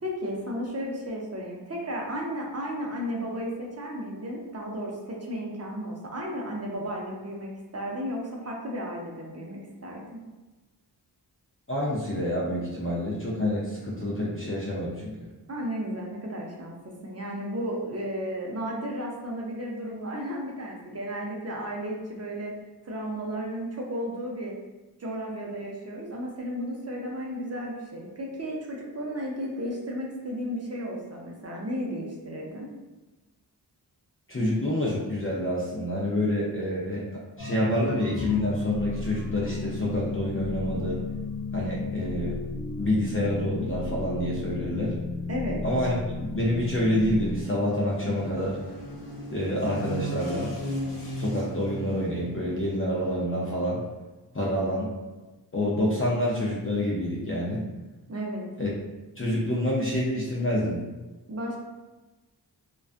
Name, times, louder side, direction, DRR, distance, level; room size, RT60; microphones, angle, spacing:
voice 1, 0.0-10.2 15.5-16.7 17.0-22.5 22.8-24.5 25.0-32.7 45.3-45.6 58.1-58.5 61.3-61.6, equal, 35° right, -2 dB, 0.5 m, -34 dB
voice 2, 11.7-15.2 34.3-41.0 41.5-42.4 42.8-44.9 45.6-46.0 46.3-48.6 49.3-50.5 51.2-53.8 54.3-54.9 55.5-57.6 58.6-58.7 59.2-60.8, left 1 dB, 30° left, -6 dB, 0.5 m, -27 dB
sound 1, 37.4-47.4, left 4 dB, 80° left, 0.7 m, -34 dB
sound 2, 46.2-53.2, right 1 dB, 55° left, 1.0 m, -37 dB
2.4 x 2.2 x 2.4 m, 1.1 s
wide cardioid pair, 55°, 43 cm